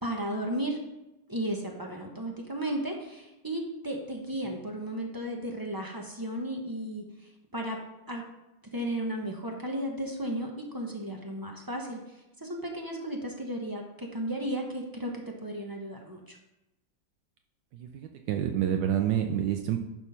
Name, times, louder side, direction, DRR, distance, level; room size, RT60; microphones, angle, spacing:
voice 1, 0.0-0.8 1.3-7.0 7.5-7.8 8.1-8.2 8.7-16.4, right 1 dB, 15° right, 1 dB, 0.8 m, -34 dB
voice 2, 17.7-19.8, right 10 dB, 75° right, 5 dB, 1.3 m, -28 dB
10.5 x 4.2 x 5.6 m, 0.95 s
omnidirectional pair, 2.0 m